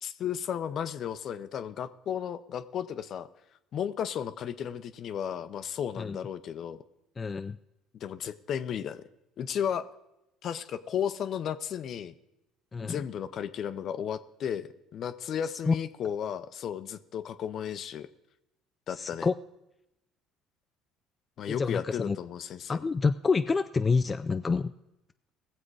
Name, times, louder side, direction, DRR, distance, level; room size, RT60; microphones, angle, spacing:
voice 1, 0.0-3.3 3.7-6.8 7.9-9.0 9.4-9.8 10.4-12.1 12.8-18.1 18.9-19.3 21.4-22.8, left 8 dB, 55° left, 12 dB, 0.7 m, -34 dB
voice 2, 7.2-7.6 12.7-13.0 15.7-15.8 18.9-19.3 21.5-22.2 22.7-24.7, left 4 dB, 25° left, 9 dB, 0.4 m, -27 dB
18.0 x 7.4 x 4.8 m, 0.89 s
supercardioid pair, 85°, 0 cm